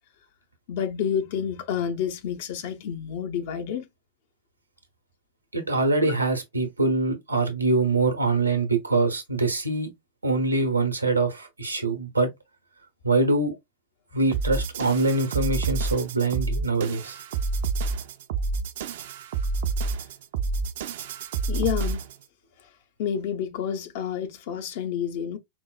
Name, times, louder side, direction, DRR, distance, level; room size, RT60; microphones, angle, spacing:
voice 1, 0.7-3.9 6.0-6.1 21.5-22.0 23.0-25.4, left 8 dB, 50° left, 0.6 m, -29 dB
voice 2, 5.5-9.9 10.2-12.3 13.0-13.6 14.1-17.2, right 3 dB, 80° right, 0.7 m, -24 dB
sound 1, 14.3-22.2, right 4 dB, 55° right, 0.4 m, -29 dB
4.5 x 2.1 x 2.3 m
figure-of-eight pair, 90°, 0 cm